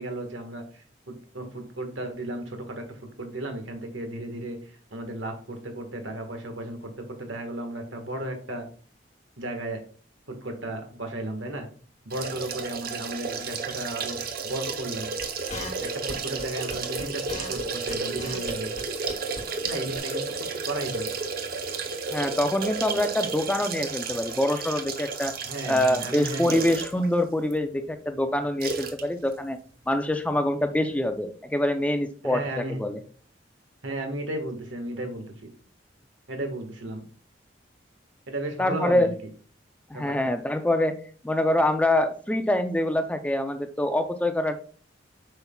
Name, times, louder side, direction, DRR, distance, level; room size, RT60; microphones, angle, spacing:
voice 1, 0.0-8.7 9.4-9.8 10.3-11.7 12.0-15.1 15.8-18.7 19.6-21.1 25.4-26.6 32.2-32.8 33.8-35.5 36.3-37.0 38.3-39.1 39.9-40.3, right 1 dB, 80° right, 4 dB, 1.5 m, -34 dB
sound 1, 12.1-27.1 27.5-27.6 28.6-29.0 29.3-29.4, right 4 dB, 50° right, 0.8 m, -32 dB
sound 2, 15.2-18.8 19.1-19.4 19.7-19.8 20.0-20.1, left 2 dB, 35° left, 1.2 m, -37 dB
voice 2, 22.1-25.3 25.7-29.6 29.9-33.0 38.6-39.1 39.9-41.0 41.2-44.6, left 1 dB, 5° left, 8 dB, 0.4 m, -25 dB
8.0 x 5.6 x 2.3 m, 0.42 s
head